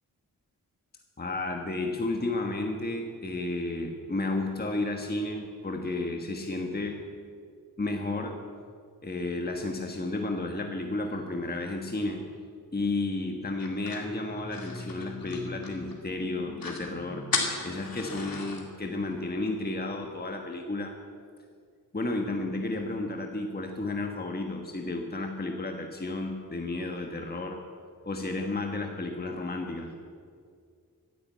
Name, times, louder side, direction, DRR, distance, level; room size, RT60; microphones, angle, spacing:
voice 1, 1.2-7.1 7.8-8.4 9.0-12.3 12.7-21.0 21.9-27.6 28.0-30.0, left 2 dB, 25° left, 3 dB, 1.4 m, -32 dB
sound 1, 13.6-16.0 16.3-16.4 16.6-16.9 17.3-18.6, left 4 dB, 75° left, 2.4 m, -34 dB
15.0 x 11.0 x 8.4 m, 2.1 s
wide cardioid pair, 75°, 35 cm